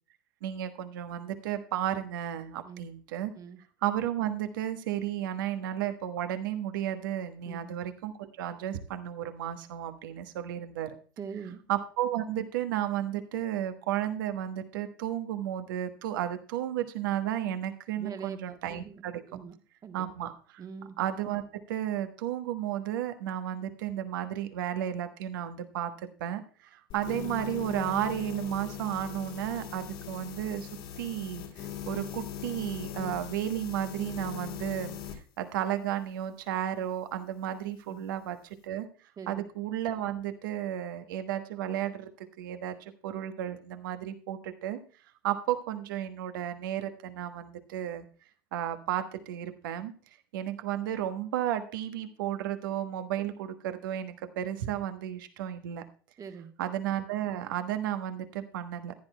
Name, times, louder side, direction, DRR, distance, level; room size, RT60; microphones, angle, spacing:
voice 1, 0.4-3.3 3.8-11.0 11.7-19.2 19.9-20.6 21.0-21.4 21.7-30.7 31.0-35.0 35.4-38.9 39.3-44.8 45.2-48.1 48.5-49.9 50.3-55.8 56.6-58.9, right 11 dB, 70° right, 9 dB, 1.2 m, -33 dB
voice 2, 11.2-11.6 18.0-19.0 19.3-19.6 19.8-20.1 20.6-21.0 37.9-38.0 39.2-39.5 56.2-56.5, right 6 dB, 30° right, 7 dB, 1.4 m, -43 dB
sound 1, 26.9-35.2, left 9 dB, 60° left, 2.5 m, -40 dB
14.5 x 10.5 x 2.2 m, 0.40 s
hypercardioid pair, 80°, 11 cm